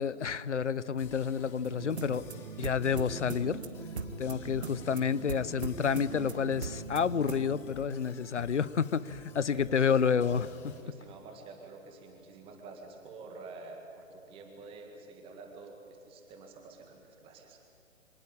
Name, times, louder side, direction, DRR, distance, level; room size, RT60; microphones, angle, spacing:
voice 1, 0.0-2.3 2.6-3.6 4.2-10.5, left 6 dB, 60° left, 17 dB, 0.9 m, -29 dB
sound 1, 1.0-10.8, left 4 dB, 5° left, 0.7 m, -51 dB
sound 2, 1.6-7.6, right 4 dB, 55° right, 1.8 m, -40 dB
voice 2, 9.5-10.3 10.8-17.6, right 3 dB, 15° right, 3 dB, 2.0 m, -49 dB
25.0 x 18.5 x 8.9 m, 2.9 s
figure-of-eight pair, 135°, 39 cm